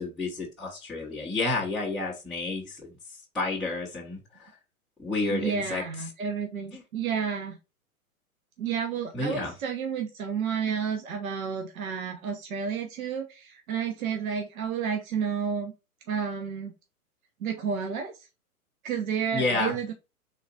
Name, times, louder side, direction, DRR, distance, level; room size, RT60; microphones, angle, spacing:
voice 1, 0.0-2.9 3.3-4.5 5.0-5.8 6.7-6.8 9.1-9.5 19.3-19.8, left 3 dB, ahead, -8 dB, 0.6 m, -30 dB
voice 2, 5.3-7.6 8.6-15.7 16.1-16.7 17.4-18.1 18.8-19.9, right 6 dB, 70° right, 4 dB, 0.9 m, -31 dB
3.8 x 2.4 x 4.0 m, 0.27 s
hypercardioid pair, 125°, 44 cm